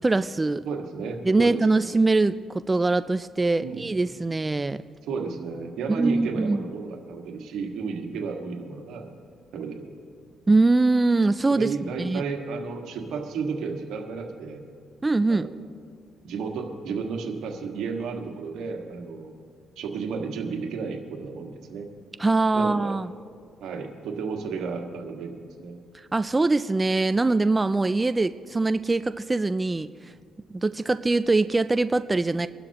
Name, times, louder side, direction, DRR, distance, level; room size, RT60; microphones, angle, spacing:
voice 1, 0.0-0.7 1.3-4.8 5.9-6.6 10.5-12.2 15.0-15.5 22.2-23.1 25.9-30.1 30.5-32.5, right 3 dB, 20° right, 12 dB, 0.3 m, -23 dB
voice 2, 0.6-2.0 3.6-3.9 5.1-9.1 9.5-9.9 11.5-14.6 15.3-15.7 16.2-19.3 19.8-21.9 22.5-23.0 23.6-25.7, right 5 dB, 80° right, 2 dB, 1.7 m, -33 dB
24.5 x 12.0 x 3.0 m, 2.1 s
cardioid pair, 90°, 0 cm